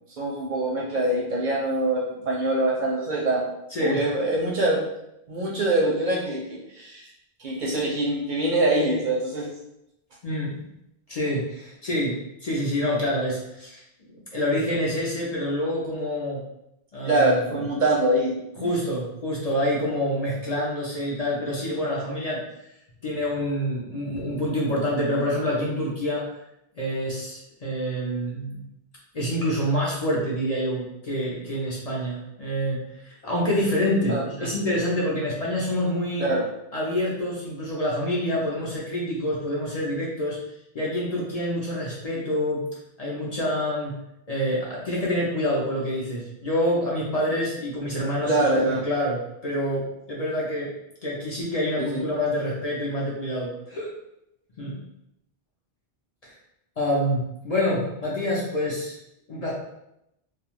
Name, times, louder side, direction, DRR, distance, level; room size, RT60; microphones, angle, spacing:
voice 1, 0.2-3.4 3.8-4.8 5.3-7.1 7.4-9.5 17.0-18.7 34.1-34.5 36.2-36.4 48.3-48.8 51.8-51.9, right 1 dB, 60° right, -3 dB, 0.6 m, -24 dB
voice 2, 10.2-10.6 11.1-12.1 12.4-13.8 14.1-16.4 16.9-17.3 18.6-22.4 23.0-26.2 26.8-28.6 29.1-36.3 36.7-40.4 40.7-42.6 43.0-43.9 44.3-48.3 48.7-50.7 51.0-53.9 54.6-54.8 56.2-56.3 56.8-59.0 59.3-59.5, equal, 45° left, -5 dB, 0.6 m, -27 dB
2.3 x 2.2 x 3.0 m, 0.84 s
omnidirectional pair, 1.0 m